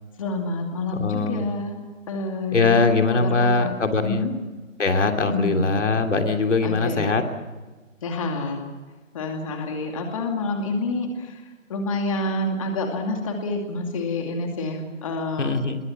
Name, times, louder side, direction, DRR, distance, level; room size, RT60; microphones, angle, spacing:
voice 1, 0.2-1.8 2.1-3.7 4.0-4.3 5.2-5.7 6.6-7.1 8.0-15.6, left 2 dB, 25° left, 3 dB, 2.5 m, -28 dB
voice 2, 0.9-1.4 2.5-4.2 4.8-7.2 15.4-15.8, left 3 dB, 60° left, 5 dB, 2.9 m, -21 dB
25.0 x 22.5 x 6.0 m, 1.3 s
figure-of-eight pair, 165°, 40 cm